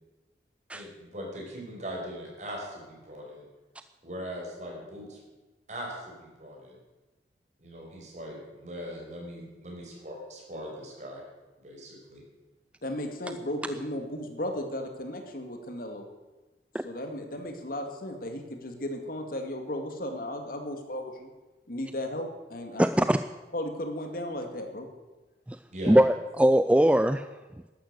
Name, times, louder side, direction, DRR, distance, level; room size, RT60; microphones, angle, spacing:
voice 1, 0.7-3.4 4.0-5.2 5.7-6.8 7.6-11.2 11.6-12.2 25.7-26.0, equal, 40° right, -1 dB, 5.5 m, -40 dB
voice 2, 12.8-16.1 16.8-21.3 21.7-23.1 23.5-24.9, left 1 dB, 55° left, 5 dB, 2.1 m, -35 dB
voice 3, 22.8-23.2 25.5-25.6 25.9-27.3, right 1 dB, 5° right, 11 dB, 0.4 m, -21 dB
13.0 x 11.5 x 8.1 m, 1.2 s
head